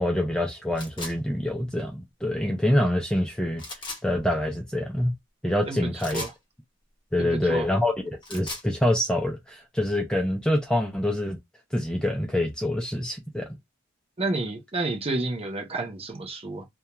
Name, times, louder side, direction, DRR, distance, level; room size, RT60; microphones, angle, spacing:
voice 1, 0.0-3.6 4.0-5.1 5.4-6.2 7.1-7.9 8.3-11.4 11.7-13.5, left 1 dB, 5° left, 0.3 m, -25 dB
sound 1, 0.8-1.2 3.6-4.0 6.0-6.4 8.1-8.7, left 2 dB, 25° left, 0.8 m, -37 dB
voice 2, 5.7-6.3 7.2-7.7 14.2-16.6, right 2 dB, 30° right, 0.6 m, -30 dB
2.2 x 2.2 x 2.9 m
head